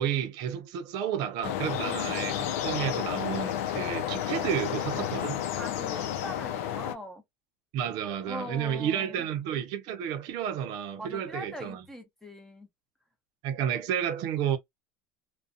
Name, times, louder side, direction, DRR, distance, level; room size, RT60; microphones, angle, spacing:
voice 1, 0.0-5.4 7.7-11.8 13.4-14.6, right 9 dB, 65° right, 0.6 m, -31 dB
sound 1, 1.4-7.0, left 11 dB, 85° left, 0.5 m, -31 dB
voice 2, 5.5-7.2 8.3-9.3 11.0-12.7, left 1 dB, 5° left, 0.8 m, -41 dB
2.4 x 2.2 x 2.4 m
supercardioid pair, 120°, 8 cm